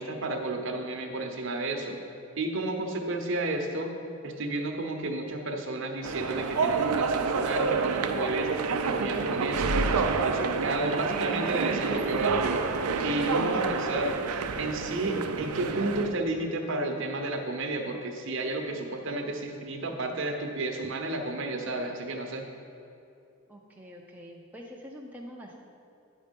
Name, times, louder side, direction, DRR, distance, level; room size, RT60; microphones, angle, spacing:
voice 1, 0.0-2.0 2.4-3.9 4.2-12.7 13.0-14.1 14.6-22.5, right 2 dB, 55° right, 3 dB, 0.8 m, -32 dB
sound 1, 6.0-16.2, right 4 dB, 85° right, 0.5 m, -28 dB
voice 2, 23.5-25.6, equal, 5° right, -2 dB, 0.5 m, -45 dB
9.0 x 5.3 x 5.2 m, 2.6 s
head